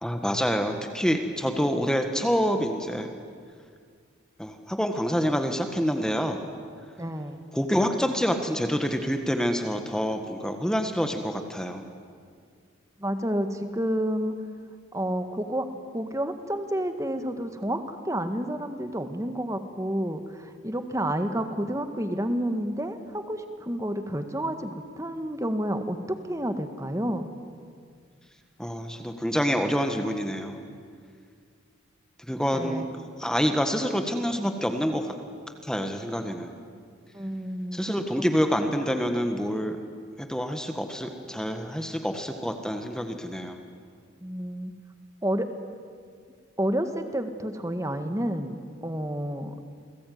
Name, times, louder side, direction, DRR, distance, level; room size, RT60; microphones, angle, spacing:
voice 1, 0.0-3.1 4.4-6.5 7.5-11.8 28.6-30.6 32.2-32.8 33.2-35.1 35.6-36.5 37.7-39.8 40.2-43.6, equal, 5° left, 5 dB, 1.6 m, -27 dB
voice 2, 7.0-7.4 13.0-14.3 14.9-15.7 15.9-26.0 26.3-27.3 32.5-32.9 37.1-37.9 44.2-44.7 45.2-45.5 46.6-49.5, right 1 dB, 15° right, 8 dB, 1.7 m, -30 dB
29.0 x 21.0 x 9.5 m, 2.1 s
head